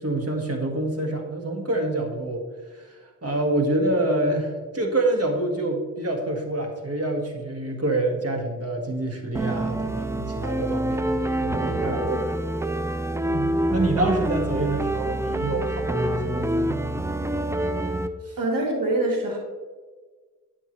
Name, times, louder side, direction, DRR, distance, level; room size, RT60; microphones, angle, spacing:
voice 1, 0.0-2.4 2.7-11.0 11.4-12.4 13.3-16.8 18.3-18.4, right 2 dB, 45° right, 2 dB, 1.6 m, -27 dB
sound 1, 9.3-18.1, right 1 dB, 10° right, 0.5 m, -26 dB
voice 2, 18.4-19.4, right 2 dB, 85° right, 1 dB, 1.5 m, -24 dB
9.8 x 6.0 x 3.2 m, 1.4 s
cardioid pair, 45°, 33 cm